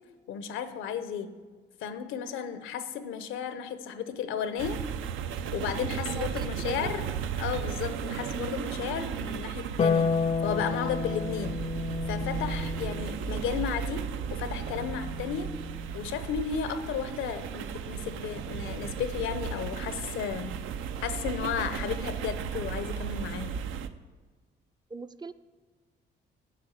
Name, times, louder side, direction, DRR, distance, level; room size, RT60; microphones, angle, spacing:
voice 1, 0.3-1.3 1.8-4.8 5.5-7.0 7.4-10.1 10.4-11.6 12.1-15.5 15.9-20.5 21.0-23.6, left 7 dB, 90° left, 11 dB, 0.8 m, -33 dB
sound 1, 4.6-23.9, right 7 dB, 90° right, 0.6 m, -35 dB
voice 2, 6.1-7.2 24.9-25.3, right 3 dB, 20° right, 12 dB, 0.4 m, -41 dB
Harp, 9.8-16.3 17.9-18.9, left 5 dB, 30° left, 0.5 m, -32 dB
sound 2, 10.1-10.5 11.4-11.9 13.3-13.7 14.7-15.1 15.9-16.2, right 5 dB, 45° right, 0.9 m, -50 dB
7.8 x 7.7 x 6.4 m, 1.4 s
cardioid pair, 90°, 20 cm